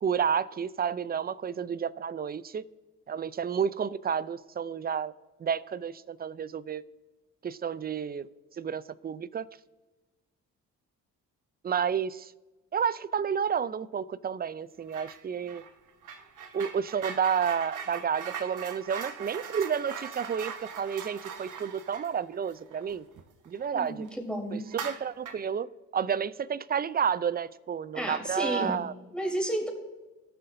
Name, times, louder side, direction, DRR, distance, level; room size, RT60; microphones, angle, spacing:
voice 1, 0.0-2.6 3.1-5.1 5.4-6.8 7.4-8.3 8.6-9.5 11.6-12.3 12.7-15.6 16.5-23.0 23.5-24.1 24.5-25.7 25.9-28.9, right 7 dB, 25° right, 0.5 m, -30 dB
sound 1, 14.9-15.2 15.5-23.7 24.0-24.1 24.7-25.5, right 7 dB, 60° right, 1.1 m, -41 dB
voice 2, 23.7-24.7 27.9-28.9 29.1-29.7, right 1 dB, 5° left, 3.7 m, -32 dB
19.0 x 6.8 x 2.7 m
hypercardioid pair, 50°, 36 cm